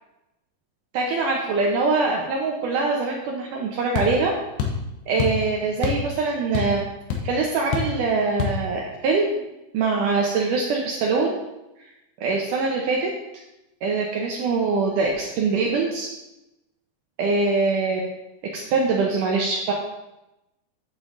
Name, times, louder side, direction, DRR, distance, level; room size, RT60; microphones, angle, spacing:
voice 1, 0.9-4.3 5.1-6.8 7.2-9.4 9.7-11.4 12.2-13.1 13.8-16.1 17.2-18.1 18.5-19.7, right 4 dB, 90° right, -1 dB, 1.8 m, -23 dB
sound 1, 3.9-4.1 4.6-4.8 5.2-5.4 5.8-6.1 6.3-6.8 7.1-7.2 7.7-8.0 8.4-8.6, left 7 dB, 75° left, 3.0 m, -25 dB
8.9 x 7.2 x 3.8 m, 0.94 s
omnidirectional pair, 4.9 m